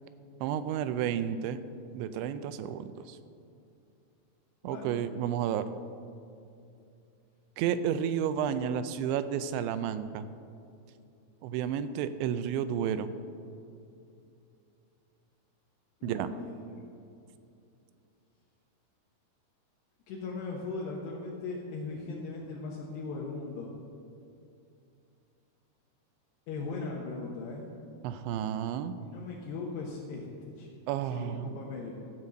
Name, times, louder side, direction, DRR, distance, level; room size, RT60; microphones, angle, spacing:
voice 1, 0.4-1.6 1.9-3.2 4.6-5.7 7.6-10.3 11.4-13.2 16.0-16.3 28.0-28.9 30.9-31.5, right 9 dB, 90° right, 12 dB, 3.0 m, -31 dB
voice 2, 4.6-5.0 16.0-16.4 16.7-16.8 20.1-23.7 26.5-27.7 29.0-30.7 31.1-31.9, left 3 dB, 75° left, -4 dB, 3.2 m, -38 dB
15.5 x 5.7 x 7.8 m, 2.5 s
omnidirectional pair, 5.2 m